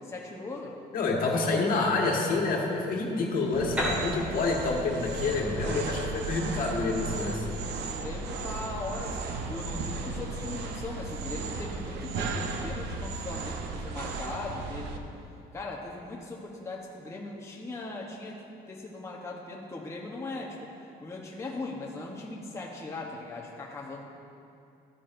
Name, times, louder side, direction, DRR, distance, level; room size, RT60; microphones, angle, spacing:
voice 1, 0.0-0.8 7.8-15.0 15.5-20.7 21.0-24.0, left 2 dB, 15° left, -2 dB, 0.9 m, -39 dB
voice 2, 0.9-7.6, left 3 dB, 60° left, -1 dB, 1.6 m, -28 dB
sound 1, 3.5-15.0, right 4 dB, 75° right, 0.8 m, -35 dB
Piano, 3.8-7.4, equal, 10° right, 2.3 m, -36 dB
13.0 x 9.7 x 2.6 m, 2.7 s
cardioid pair, 110°, 17 cm